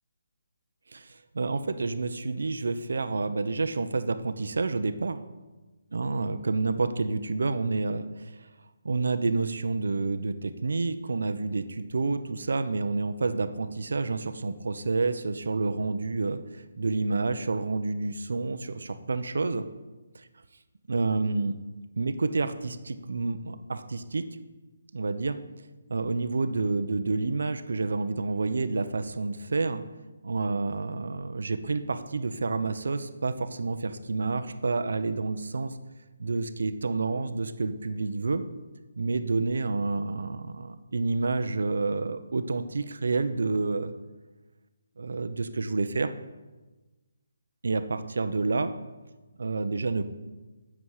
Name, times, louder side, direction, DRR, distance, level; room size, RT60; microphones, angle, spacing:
voice 1, 1.3-5.2 5.9-8.3 8.8-16.4 16.8-19.7 20.9-21.6 22.0-24.2 24.9-25.4 25.9-29.8 30.2-35.7 36.2-38.4 39.0-43.9 45.0-46.1 47.6-48.7 49.4-50.1, right 3 dB, 80° right, 11 dB, 0.8 m, -29 dB
11.0 x 7.5 x 4.9 m, 1.2 s
hypercardioid pair, 165°, 0 cm